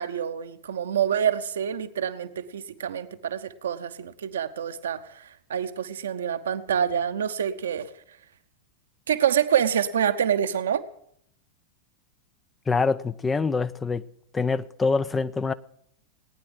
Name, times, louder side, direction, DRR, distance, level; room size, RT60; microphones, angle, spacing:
voice 1, 0.0-7.9 9.1-10.8, right 9 dB, 65° right, 1.0 m, -26 dB
voice 2, 12.7-14.0 14.3-15.5, left 4 dB, 15° left, 0.6 m, -25 dB
19.0 x 9.8 x 7.6 m
figure-of-eight pair, 90°, 0 cm